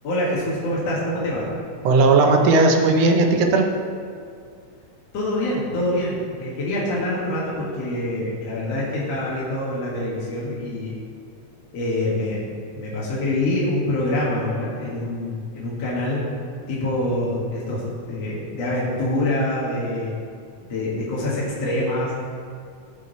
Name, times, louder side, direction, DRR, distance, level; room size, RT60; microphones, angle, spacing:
voice 1, 0.0-1.5 5.1-10.9 11.7-16.3 16.7-17.8 18.1-20.1 20.7-22.1, left 1 dB, 55° left, -7 dB, 2.9 m, -25 dB
voice 2, 1.8-3.7, right 3 dB, 65° right, 3 dB, 1.8 m, -16 dB
16.5 x 6.3 x 4.1 m, 2.3 s
omnidirectional pair, 3.5 m